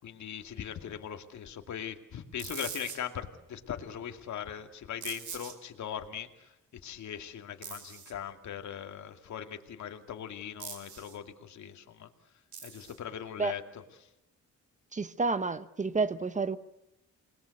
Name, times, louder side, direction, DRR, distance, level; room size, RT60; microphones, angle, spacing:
voice 1, 0.0-6.5 6.8-12.1 12.6-13.8, left 9 dB, 60° left, 2.5 m, -40 dB
sound 1, 2.4-3.0 5.0-5.5 7.6-8.1 10.6-11.2 12.5-13.0, right 7 dB, 65° right, 4.9 m, -42 dB
voice 2, 14.9-16.6, right 4 dB, 25° right, 1.0 m, -30 dB
28.5 x 21.0 x 8.4 m
wide cardioid pair, 160°, 32 cm